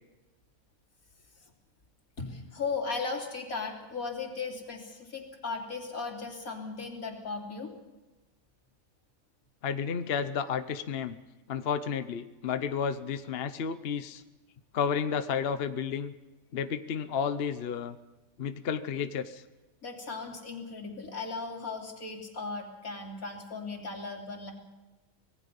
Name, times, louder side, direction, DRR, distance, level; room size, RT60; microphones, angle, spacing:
voice 1, 2.2-7.7 19.8-24.5, left 4 dB, 85° left, 1 dB, 3.5 m, -37 dB
voice 2, 9.6-11.2 11.5-14.2 14.7-16.1 16.5-18.0 18.4-19.4, left 7 dB, 50° left, 11 dB, 1.0 m, -31 dB
25.5 x 19.0 x 5.4 m, 1.1 s
omnidirectional pair, 1.4 m